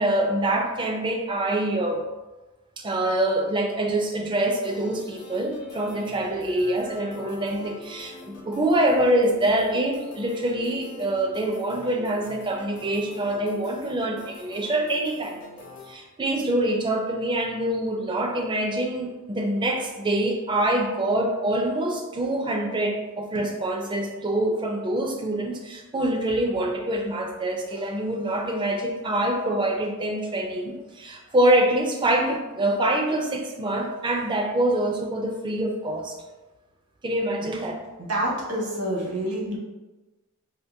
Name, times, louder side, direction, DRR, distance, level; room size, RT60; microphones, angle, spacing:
voice 1, 0.0-2.0 2.8-15.4 15.9-36.2 37.0-37.8, right 1 dB, 20° right, 2 dB, 0.4 m, -25 dB
sound 1, 4.6-15.9, left 2 dB, 75° left, 0.6 m, -44 dB
voice 2, 38.0-39.6, right 1 dB, 75° right, -3 dB, 1.0 m, -28 dB
3.5 x 2.5 x 2.7 m, 1.2 s
head